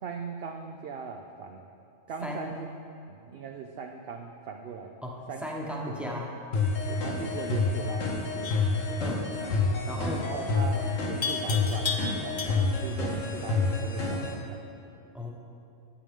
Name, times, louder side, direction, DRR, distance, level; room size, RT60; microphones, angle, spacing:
voice 1, 0.0-1.7 2.1-2.7 3.1-4.9 5.3-5.5 5.9-6.1 6.9-8.6 9.9-12.0 12.2-14.7, right 5 dB, 60° right, 3 dB, 0.6 m, -40 dB
voice 2, 5.0-6.3 9.0-9.3 9.9-10.2 15.1-15.3, left 1 dB, ahead, -2 dB, 1.0 m, -36 dB
sound 1, 6.5-14.3, left 3 dB, 75° left, 1.4 m, -28 dB
Livestock farm animals working animals, 8.4-8.8 11.2-12.9, left 4 dB, 40° left, 0.4 m, -33 dB
11.0 x 8.5 x 3.6 m, 2.7 s
omnidirectional pair, 1.4 m